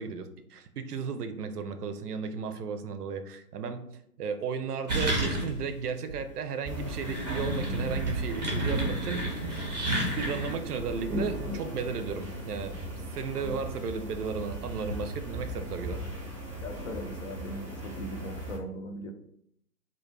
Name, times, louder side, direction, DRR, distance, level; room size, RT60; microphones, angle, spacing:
voice 1, 0.0-3.9 4.2-9.4 10.2-12.8 13.1-16.0, right 5 dB, 75° right, 8 dB, 0.5 m, -34 dB
sound 1, 4.9-5.7 6.1-6.2 6.8-10.6, right 2 dB, 30° right, 0.5 m, -30 dB
sound 2, 6.6-18.6, equal, 5° right, 0.8 m, -38 dB
voice 2, 16.6-19.1, equal, 55° left, 5 dB, 0.5 m, -39 dB
2.1 x 2.1 x 3.2 m, 0.72 s
figure-of-eight pair, 130°, 46 cm